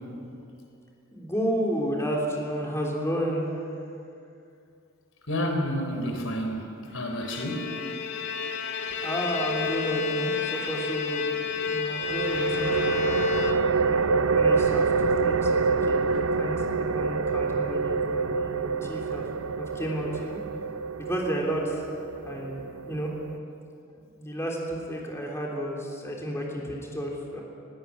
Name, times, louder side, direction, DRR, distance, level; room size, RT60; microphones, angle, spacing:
voice 1, 1.1-3.6 9.0-13.0 13.8-19.2 19.6-20.4 21.0-21.8 22.2-23.1 24.2-27.4, equal, 15° left, -2 dB, 3.4 m, -32 dB
voice 2, 5.3-7.7, equal, 80° left, 3 dB, 3.9 m, -30 dB
Bowed string instrument, 7.0-14.0, left 5 dB, 55° left, 1.8 m, -30 dB
sound 1, 12.0-23.4, right 4 dB, 80° right, 0.6 m, -27 dB
21.0 x 17.0 x 8.6 m, 2.6 s
head